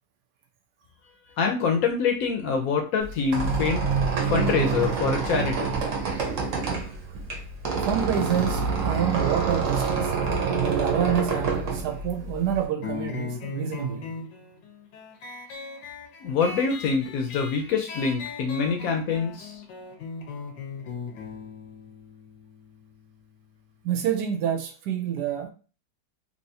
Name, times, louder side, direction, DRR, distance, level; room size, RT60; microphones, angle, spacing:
voice 1, 1.4-3.8 4.3-5.7 16.2-19.6, left 5 dB, 65° left, 1.0 m, -25 dB
Squeak, 3.0-12.6, right 5 dB, 55° right, 1.0 m, -27 dB
voice 2, 7.8-10.2 10.5-14.1 23.8-25.5, right 9 dB, 80° right, 1.2 m, -28 dB
sound 1, 12.8-23.9, left 5 dB, 85° left, 1.3 m, -39 dB
3.3 x 2.8 x 2.7 m
omnidirectional pair, 1.8 m